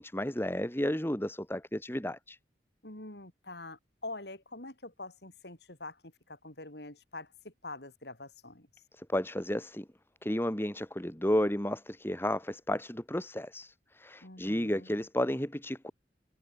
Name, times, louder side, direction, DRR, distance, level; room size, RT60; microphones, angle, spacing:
voice 1, 0.0-2.4 9.0-9.9 10.2-15.9, left 1 dB, 10° left, 1.8 m, -32 dB
voice 2, 2.8-8.7 14.2-14.9, left 2 dB, 60° left, 4.3 m, -45 dB
head